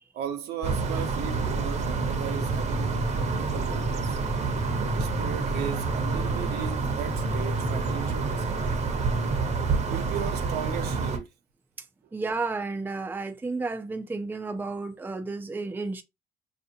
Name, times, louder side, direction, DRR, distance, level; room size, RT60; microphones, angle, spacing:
voice 1, 0.1-4.2 4.9-8.9 9.8-11.3, right 9 dB, 75° right, 0.8 m, -37 dB
sound 1, 0.6-11.2, right 3 dB, 40° right, 0.8 m, -28 dB
voice 2, 12.1-16.0, right 3 dB, 10° right, 0.5 m, -32 dB
4.8 x 2.7 x 2.7 m
cardioid pair, 110°, 17 cm